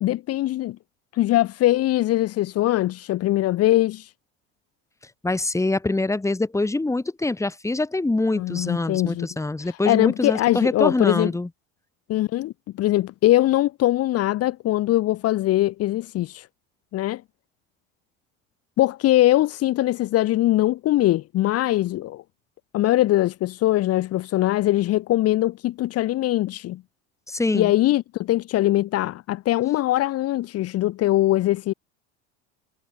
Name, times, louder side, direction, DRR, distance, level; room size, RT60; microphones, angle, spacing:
voice 1, 0.0-0.8 1.1-4.1 8.3-9.3 9.6-11.3 12.1-16.5 16.9-17.2 18.8-22.2 22.7-26.8 27.5-31.7, left 15 dB, 50° left, 1.5 m, -22 dB
voice 2, 5.2-11.5 27.3-27.7, left 2 dB, 10° left, 3.0 m, -24 dB
supercardioid pair, 105°, 31 cm